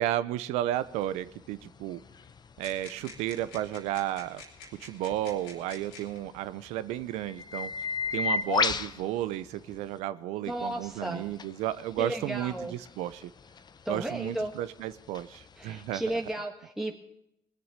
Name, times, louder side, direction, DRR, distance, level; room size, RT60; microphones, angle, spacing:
voice 1, 0.0-2.0 2.6-4.4 4.8-7.7 8.1-13.3 13.9-16.2, right 13 dB, 80° right, 15 dB, 0.7 m, -33 dB
sound 1, 0.7-10.0 10.4-16.3, left 5 dB, 40° left, 0.9 m, -36 dB
sound 2, 2.6-6.2 7.2-7.3 8.0-8.8, left 4 dB, 90° left, 3.5 m, -48 dB
voice 2, 10.5-11.2 12.0-12.7 13.8-14.5 15.6-16.9, right 1 dB, 5° right, 2 dB, 1.6 m, -34 dB
20.0 x 6.9 x 9.0 m, 0.80 s
supercardioid pair, 65°, 11 cm